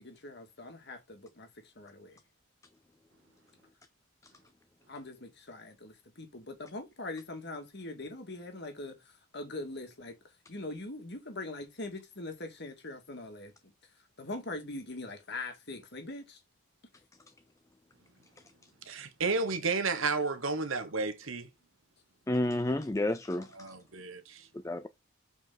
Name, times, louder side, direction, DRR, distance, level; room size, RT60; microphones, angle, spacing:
voice 1, 0.0-2.2 4.9-13.7 14.2-16.4 21.2-21.3, left 2 dB, 55° left, 2.1 m, -42 dB
voice 2, 18.9-21.5 23.5-24.5, right 4 dB, 75° right, 1.2 m, -32 dB
voice 3, 22.3-23.5 24.6-24.9, left 1 dB, 15° left, 0.4 m, -30 dB
7.0 x 5.1 x 3.9 m
head